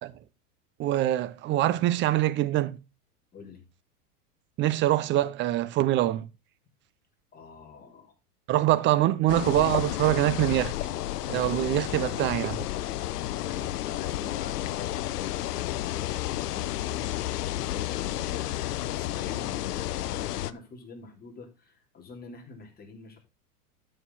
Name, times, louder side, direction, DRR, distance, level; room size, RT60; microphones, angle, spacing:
voice 1, 0.8-2.8 4.6-6.3 8.5-10.7 11.3-12.7, right 14 dB, 25° right, 0.6 m, -24 dB
voice 2, 3.3-3.6 7.3-8.1 9.0-9.1 13.3-23.2, left 5 dB, 20° left, 3.6 m, -46 dB
sound 1, 9.3-20.5, left 14 dB, 80° left, 0.8 m, -31 dB
12.5 x 6.6 x 4.0 m
hypercardioid pair, 125°, 47 cm